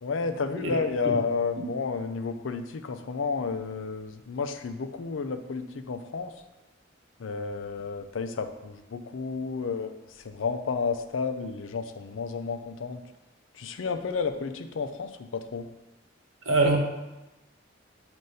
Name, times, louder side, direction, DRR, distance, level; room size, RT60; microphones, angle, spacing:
voice 1, 0.0-6.3 7.2-13.0 13.5-15.7, left 4 dB, 85° left, 8 dB, 0.5 m, -31 dB
voice 2, 16.5-16.8, right 2 dB, 90° right, 1 dB, 1.0 m, -23 dB
7.8 x 2.6 x 5.4 m, 1.0 s
head